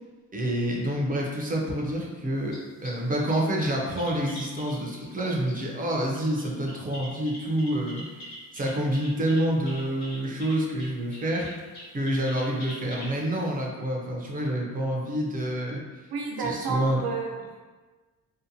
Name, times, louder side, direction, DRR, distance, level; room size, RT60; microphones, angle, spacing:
voice 1, 0.3-8.0 8.5-11.5 11.9-15.8 16.4-17.0, right 1 dB, 25° right, -1 dB, 0.4 m, -28 dB
sound 1, 2.3-3.0 3.3-5.8 6.1-13.2 13.5-13.6, equal, 80° left, 1.1 m, -44 dB
voice 2, 16.1-17.6, right 4 dB, 70° right, 0 dB, 0.6 m, -31 dB
2.7 x 2.1 x 2.6 m, 1.3 s
cardioid pair, 140°, 39 cm